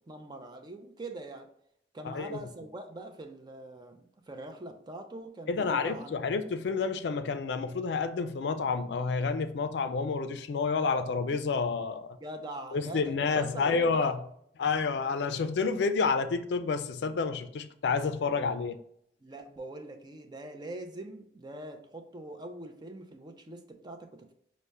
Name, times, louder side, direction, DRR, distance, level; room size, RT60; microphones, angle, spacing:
voice 1, 0.1-1.5 1.9-6.1 12.2-14.2 19.2-24.3, right 2 dB, 25° right, 0.4 m, -43 dB
voice 2, 2.0-2.4 5.5-12.2 12.7-14.2 14.6-18.8, left 4 dB, 75° left, 0.4 m, -29 dB
5.3 x 2.1 x 3.3 m
head